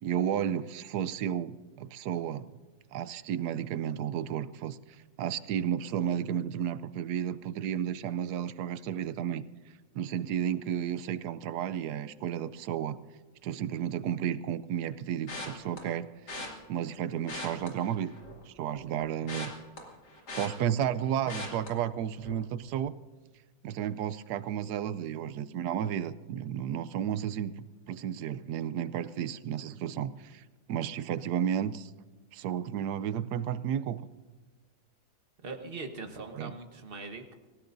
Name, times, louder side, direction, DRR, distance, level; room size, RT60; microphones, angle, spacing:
voice 1, 0.0-2.5 2.9-4.8 5.2-9.4 9.9-13.0 13.4-16.1 16.7-18.1 18.5-19.5 20.4-22.9 23.6-30.4 30.7-31.9 32.3-34.0 36.3-36.5, right 9 dB, 80° right, 15 dB, 1.2 m, -32 dB
sound 1, 15.3-15.8 16.3-16.5 17.2-18.4 18.7-21.0 21.3-21.7 22.2-22.4 22.7-22.8, left 2 dB, 85° left, 3.1 m, -40 dB
voice 2, 35.4-37.3, right 3 dB, 35° right, 5 dB, 1.4 m, -41 dB
25.5 x 16.0 x 2.6 m, 1.3 s
omnidirectional pair, 1.7 m